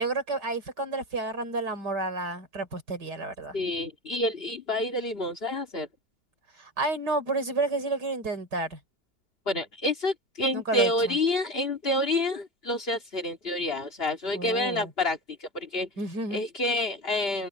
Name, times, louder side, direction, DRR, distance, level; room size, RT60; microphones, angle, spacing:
voice 1, 0.0-3.6 6.6-8.8 10.5-11.1 14.3-14.9 16.0-16.4, right 3 dB, 65° right, 6.1 m, -31 dB
voice 2, 3.5-5.9 9.5-15.9 16.3-17.5, left 1 dB, 35° left, 2.7 m, -28 dB
open air
omnidirectional pair, 1.9 m